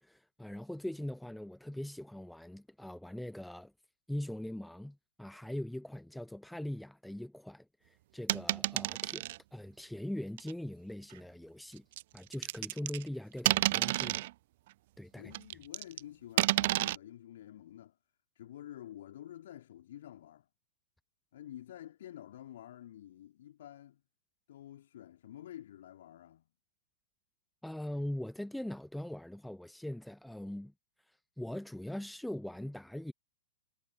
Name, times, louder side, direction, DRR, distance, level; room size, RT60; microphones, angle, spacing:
voice 1, 0.0-3.7 4.1-11.8 12.1-14.3 15.0-15.3 27.6-30.7 31.4-33.1, left 1 dB, ahead, 0.9 m, -41 dB
sound 1, 8.3-9.4 10.4-10.5 12.0-13.1 13.4-14.3 15.3-16.0 16.4-17.0, right 17 dB, 45° right, 0.8 m, -30 dB
voice 2, 15.1-18.0 18.4-20.5 21.3-24.0 24.5-26.5, left 12 dB, 55° left, 3.6 m, -49 dB
figure-of-eight pair, 105°, 0 cm